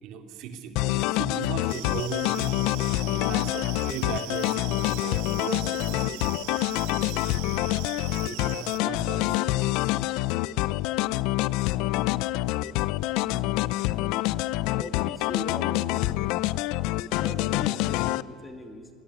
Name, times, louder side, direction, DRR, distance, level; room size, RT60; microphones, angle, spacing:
voice 1, 0.0-2.7 3.0-4.6 5.0-6.6 8.2-9.6, right 7 dB, 60° right, 6 dB, 2.6 m, -38 dB
sound 1, 0.8-18.2, left 17 dB, 70° left, 0.6 m, -26 dB
sound 2, 1.7-8.8, right 19 dB, 80° right, 1.0 m, -41 dB
voice 2, 14.8-16.0 17.1-18.9, left 2 dB, 15° left, 6 dB, 2.3 m, -39 dB
26.5 x 19.5 x 9.7 m, 2.4 s
cardioid pair, 150°, 0 cm